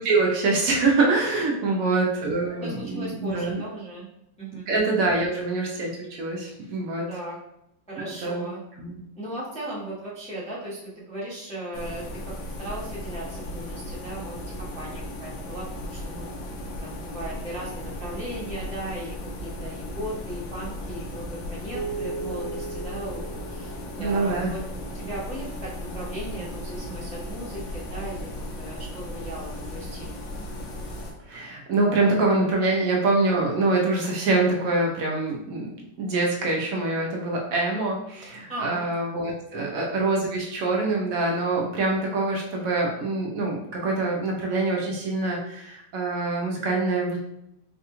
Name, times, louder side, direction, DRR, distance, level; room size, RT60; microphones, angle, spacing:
voice 1, 0.0-3.6 4.7-7.1 8.0-8.5 8.8-9.0 24.0-24.5 31.2-35.7 36.0-47.2, right 3 dB, 70° right, -1 dB, 0.8 m, -25 dB
voice 2, 2.6-4.1 4.4-4.7 7.1-7.4 7.9-8.6 9.2-16.3 16.8-19.2 19.4-24.6 24.9-28.3 28.6-30.2 38.5-38.8 39.5-39.7, right 1 dB, 10° left, -7 dB, 0.4 m, -37 dB
sound 1, 11.7-31.1, equal, 90° left, 1.4 m, -36 dB
Keyboard (musical), 21.7-24.7, right 3 dB, 60° left, 2.1 m, -37 dB
4.0 x 2.3 x 2.9 m, 0.78 s
omnidirectional pair, 2.0 m